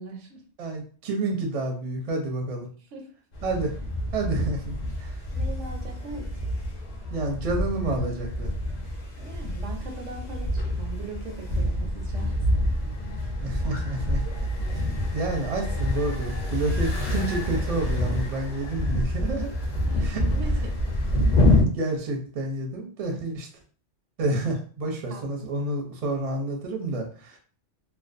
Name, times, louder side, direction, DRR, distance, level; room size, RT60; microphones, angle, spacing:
voice 1, 0.0-0.4 2.9-3.1 5.3-6.5 9.2-12.8 19.9-21.0 25.1-25.2, right 3 dB, 90° right, 3 dB, 1.0 m, -41 dB
voice 2, 0.6-2.7 3.4-3.7 4.1-5.2 7.1-8.5 13.4-14.2 14.7-14.9 15.1-19.5 20.0-20.2 21.5-23.5 24.2-27.4, right 2 dB, 45° right, 2 dB, 0.5 m, -29 dB
sound 1, 3.3-21.6, left 1 dB, 45° left, 0.6 m, -27 dB
2.4 x 2.2 x 2.5 m, 0.43 s
omnidirectional pair, 1.2 m